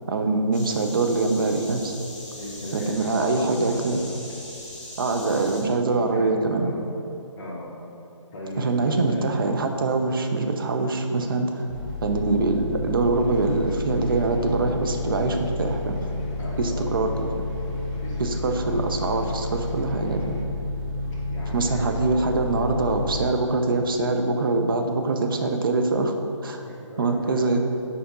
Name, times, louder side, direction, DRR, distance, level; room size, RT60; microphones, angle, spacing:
voice 1, 0.1-1.9 2.7-4.0 5.0-6.7 8.6-11.7 12.0-16.0 16.6-17.5 18.2-20.4 21.5-26.2 26.4-26.6 27.0-27.6, right 3 dB, 45° right, 4 dB, 0.6 m, -24 dB
sound 1, 0.5-5.6, left 1 dB, 5° left, 1.2 m, -40 dB
voice 2, 2.3-4.1 5.2-5.6 5.9-6.9 7.4-7.7 8.3-9.3 16.4-17.0 18.0-18.9 19.2-19.4 21.3-22.1 26.6-27.6, left 1 dB, 35° left, -9 dB, 1.2 m, -37 dB
sound 2, 11.7-23.2, left 2 dB, 20° right, 1.1 m, -30 dB
sound 3, 13.1-20.4, left 1 dB, 20° left, 0.5 m, -45 dB
7.1 x 5.0 x 3.8 m, 2.7 s
figure-of-eight pair, 155°, 16 cm